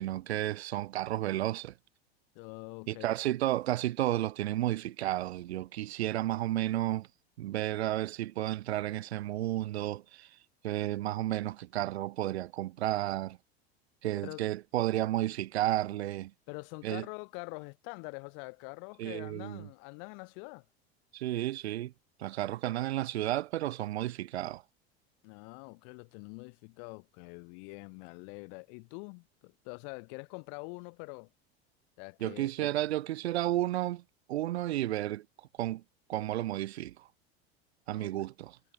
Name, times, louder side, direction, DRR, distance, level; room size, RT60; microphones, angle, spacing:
voice 1, 0.0-1.7 2.9-7.1 7.4-10.3 10.6-13.4 14.0-16.3 16.8-17.1 19.0-19.7 21.1-21.9 22.2-24.6 32.2-34.0 34.3-35.2 35.6-35.8 36.1-36.9 37.9-38.6, right 14 dB, 85° right, 2.2 m, -32 dB
voice 2, 2.3-3.1 14.2-14.5 16.5-20.6 25.2-31.3 32.0-32.7 37.9-38.1, left 40 dB or more, 65° left, 3.9 m, -45 dB
hypercardioid pair, 95°, 31 cm